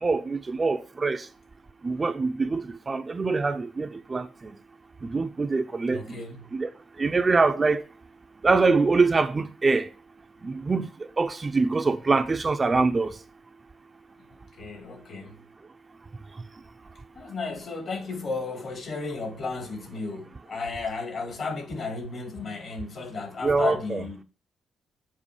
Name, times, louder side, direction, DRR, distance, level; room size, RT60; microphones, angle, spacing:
voice 1, 0.0-1.2 1.8-2.6 2.9-4.3 5.1-6.0 6.5-6.7 7.0-7.8 8.4-9.9 10.4-10.9 11.2-13.1 23.4-24.0, right 4 dB, 30° right, 0.6 m, -24 dB
voice 2, 5.9-6.5 14.6-15.4 17.2-24.2, left 4 dB, 55° left, 2.1 m, -34 dB
7.5 x 4.8 x 4.8 m
cardioid pair, 90°, 0 cm